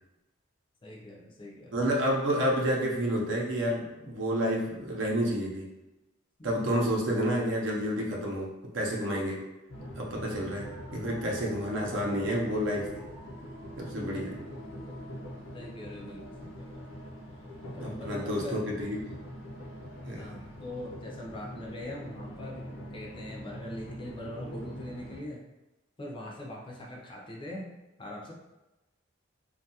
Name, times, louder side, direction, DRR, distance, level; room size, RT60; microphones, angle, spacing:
voice 1, 0.8-1.8 6.4-6.8 14.0-14.1 15.5-16.8 17.7-18.7 20.2-25.4 26.0-27.7 28.0-28.3, left 1 dB, 25° left, -2 dB, 0.4 m, -42 dB
voice 2, 1.7-5.7 6.4-9.4 9.9-13.0 13.8-14.3 17.8-19.0 20.1-20.3, equal, 65° right, -2 dB, 0.6 m, -30 dB
sound 1, 9.7-25.2, equal, 75° left, 0.7 m, -43 dB
2.6 x 2.3 x 2.7 m, 1.0 s
head